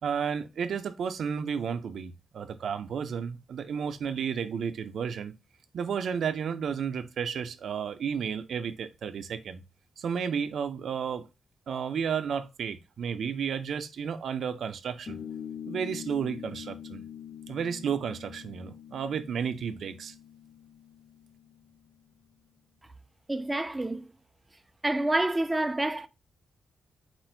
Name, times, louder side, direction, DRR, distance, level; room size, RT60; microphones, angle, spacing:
voice 1, 0.0-5.3 5.7-9.6 10.0-11.3 11.7-15.2 15.7-17.0 17.5-20.1, right 7 dB, 65° right, 0.5 m, -32 dB
sound 1, 15.1-22.0, left 9 dB, 55° left, 0.4 m, -44 dB
voice 2, 23.3-24.1 24.8-26.1, right 1 dB, 10° right, 0.4 m, -28 dB
4.4 x 2.5 x 4.4 m
wide cardioid pair, 155°, 0 cm